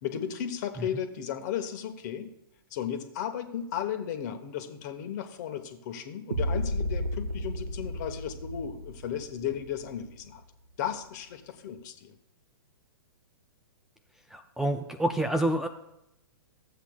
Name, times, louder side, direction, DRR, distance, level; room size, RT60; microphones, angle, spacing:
voice 1, 0.0-2.3 2.7-10.4 10.8-12.1, left 9 dB, 45° left, 7 dB, 1.2 m, -35 dB
sound 1, 6.3-10.3, equal, 90° right, 0.7 m, -33 dB
voice 2, 14.3-15.7, right 1 dB, 5° right, 5 dB, 0.5 m, -27 dB
14.5 x 8.1 x 2.4 m, 0.86 s
hypercardioid pair, 115°, 13 cm